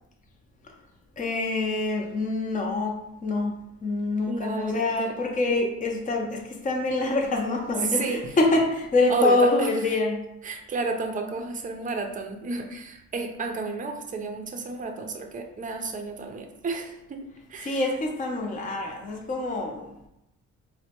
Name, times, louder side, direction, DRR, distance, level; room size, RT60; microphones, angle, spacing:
voice 1, 1.2-3.0 3.2-3.5 3.8-10.2 17.6-20.1, left 2 dB, 25° left, 1 dB, 0.6 m, -25 dB
voice 2, 4.3-5.1 7.8-8.2 9.1-9.7 10.4-17.8, right 3 dB, 25° right, 4 dB, 0.5 m, -31 dB
4.2 x 2.1 x 2.8 m, 0.85 s
cardioid pair, 90°, 30 cm